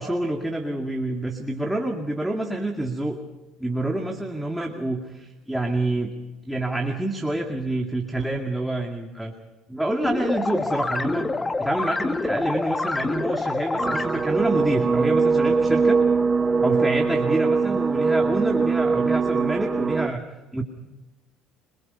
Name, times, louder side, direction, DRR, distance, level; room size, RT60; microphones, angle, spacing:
voice 1, 0.0-3.2 3.6-6.1 6.5-9.3 9.7-11.3 11.6-16.0 16.6-20.2 20.5-20.6, right 1 dB, 5° right, 2 dB, 2.2 m, -27 dB
sound 1, 10.0-14.4, left 3 dB, 20° left, 1.2 m, -27 dB
sound 2, 13.8-20.1, right 4 dB, 25° right, 1.1 m, -22 dB
26.5 x 22.0 x 5.6 m, 1.1 s
supercardioid pair, 95°, 0 cm